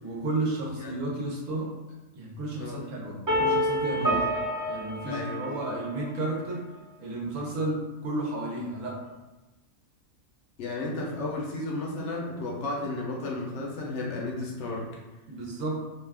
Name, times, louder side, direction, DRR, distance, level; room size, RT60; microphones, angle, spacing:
voice 1, 0.0-1.7 2.2-4.3 4.7-6.6 7.0-9.0 15.3-15.8, right 2 dB, 70° right, -3 dB, 1.1 m, -32 dB
voice 2, 2.6-2.9 5.1-5.7 10.6-14.9, left 2 dB, 65° left, -3 dB, 0.9 m, -33 dB
sound 1, 3.3-6.2, equal, 20° right, 0.7 m, -28 dB
2.7 x 2.3 x 3.3 m, 1.1 s
omnidirectional pair, 1.4 m